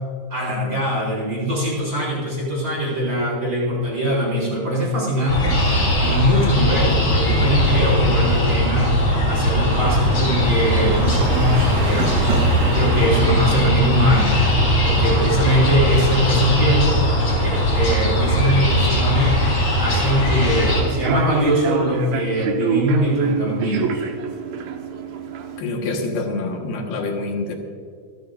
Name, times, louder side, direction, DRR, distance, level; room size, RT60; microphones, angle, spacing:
voice 1, 0.3-9.0 9.3-14.4 14.8-17.0 17.4-19.4 19.8-24.0, equal, 25° right, -4 dB, 3.9 m, -22 dB
sound 1, 5.3-20.8, equal, 40° left, 4.8 m, -19 dB
sound 2, 9.7-16.6, right 2 dB, 55° right, 2.1 m, -28 dB
Human voice / Subway metro underground, 20.1-25.6, right 6 dB, 80° right, 3.0 m, -26 dB
voice 2, 25.6-27.6, left 3 dB, 80° left, 2 dB, 3.4 m, -26 dB
27.5 x 13.0 x 2.5 m, 2.1 s
omnidirectional pair, 4.3 m